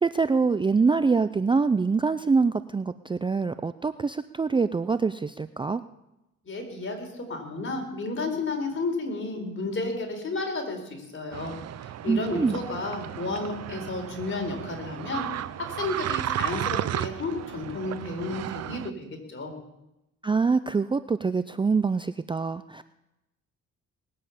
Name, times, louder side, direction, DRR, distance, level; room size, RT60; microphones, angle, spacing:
voice 1, 0.0-5.8 12.1-12.6 20.2-22.9, right 4 dB, 15° right, 12 dB, 0.4 m, -25 dB
voice 2, 6.4-19.5, left 3 dB, 40° left, 3 dB, 4.2 m, -32 dB
sound 1, 11.3-18.9, right 12 dB, 60° right, 0.6 m, -34 dB
19.5 x 7.6 x 8.4 m, 0.93 s
cardioid pair, 90°, 30 cm